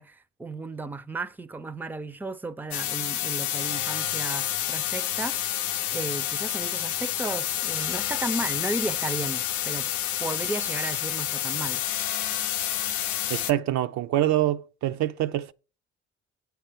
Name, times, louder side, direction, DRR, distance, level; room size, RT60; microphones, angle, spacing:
voice 1, 0.0-9.9 10.2-11.8, right 2 dB, 5° right, 0.5 m, -34 dB
sound 1, 2.7-13.5, left 11 dB, 70° left, 0.6 m, -29 dB
voice 2, 13.3-15.5, right 13 dB, 65° right, 0.5 m, -25 dB
8.4 x 4.6 x 5.1 m
hypercardioid pair, 55°, 30 cm